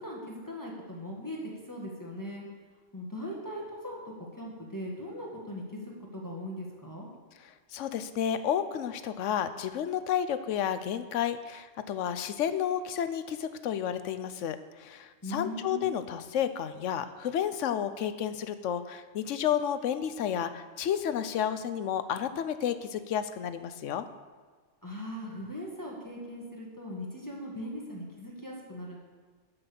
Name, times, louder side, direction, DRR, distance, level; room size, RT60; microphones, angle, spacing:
voice 1, 0.0-1.4 1.7-2.4 2.9-4.0 4.3-5.8 6.1-7.1 15.2-16.0 24.8-29.0, equal, 15° left, -3 dB, 1.7 m, -39 dB
voice 2, 7.7-24.1, left 9 dB, 80° left, 12 dB, 1.0 m, -31 dB
12.0 x 5.8 x 6.9 m, 1.4 s
omnidirectional pair, 1.3 m